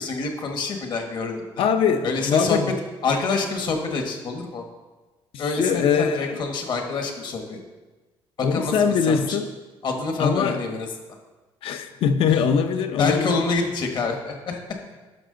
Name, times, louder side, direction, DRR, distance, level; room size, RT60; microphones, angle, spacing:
voice 1, 0.0-1.6 2.0-2.6 3.0-4.6 5.4-7.6 8.4-9.4 9.8-10.9 12.3-12.4 13.0-14.6, left 4 dB, 50° left, 3 dB, 1.2 m, -27 dB
voice 2, 1.6-2.7 5.3-6.4 8.4-9.5 10.2-10.6 11.6-13.4, left 6 dB, 65° left, 8 dB, 0.7 m, -22 dB
12.0 x 5.8 x 3.8 m, 1.2 s
cardioid pair, 160°, 10 cm